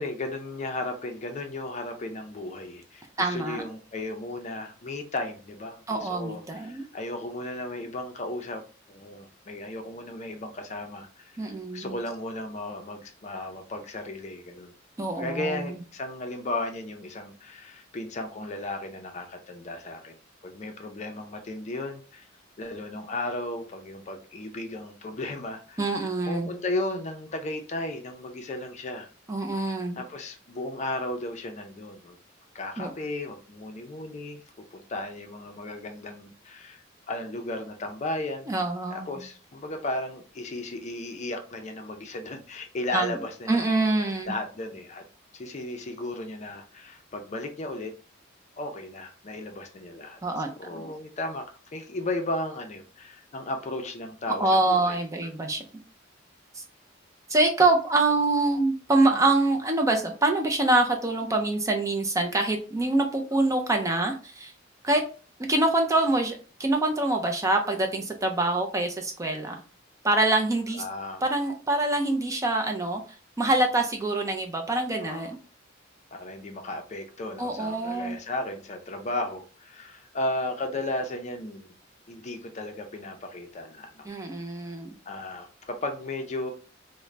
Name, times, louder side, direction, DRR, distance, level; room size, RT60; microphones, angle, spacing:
voice 1, 0.0-8.6 8.9-14.7 15.2-20.2 20.4-22.3 22.6-29.1 30.0-32.2 32.5-34.4 34.7-38.5 38.9-43.7 44.3-45.0 45.3-47.9 48.6-50.2 50.6-55.0 59.1-59.2 70.7-71.2 75.0-75.3 76.1-81.7 82.1-84.1 85.1-86.5, left 2 dB, 35° left, 5 dB, 0.5 m, -35 dB
voice 2, 3.2-3.6 5.9-6.8 11.4-12.0 15.0-15.8 25.8-26.5 29.3-30.0 32.8-32.9 38.5-39.2 42.9-43.2 43.5-44.3 50.2-50.5 50.7-50.9 54.4-55.6 56.6-56.7 57.3-64.5 64.8-65.0 65.4-69.6 70.0-70.8 71.2-73.0 73.4-75.4 77.4-78.2 84.1-84.9, right 2 dB, 15° right, 3 dB, 0.4 m, -25 dB
3.7 x 2.1 x 3.2 m, 0.37 s
head